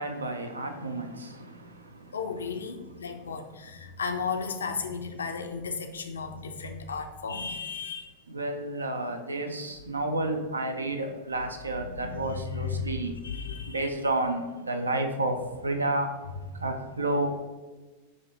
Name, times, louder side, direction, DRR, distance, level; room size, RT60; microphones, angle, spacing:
voice 1, 0.0-2.2 3.0-3.1 8.3-13.2 13.7-16.2 16.5-17.4, right 2 dB, 75° right, 0.4 m, -31 dB
voice 2, 2.1-8.1 11.8-13.9, left 5 dB, 70° left, 0.4 m, -34 dB
5.0 x 2.6 x 3.5 m
figure-of-eight pair, 90°, 0 cm